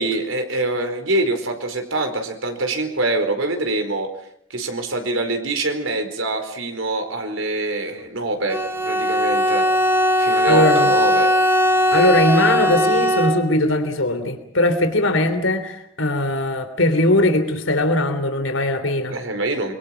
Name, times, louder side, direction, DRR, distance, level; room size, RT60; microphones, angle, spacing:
voice 1, 0.0-4.1 4.5-8.6 8.9-9.6 10.2-11.3 11.9-12.1 19.1-19.7, right 2 dB, 85° right, 6 dB, 4.6 m, -24 dB
Bowed string instrument, 8.5-13.7, equal, 15° right, 2.0 m, -19 dB
voice 2, 10.5-10.9 11.9-19.1, left 1 dB, 80° left, 8 dB, 3.4 m, -20 dB
29.0 x 23.0 x 5.9 m, 0.69 s
head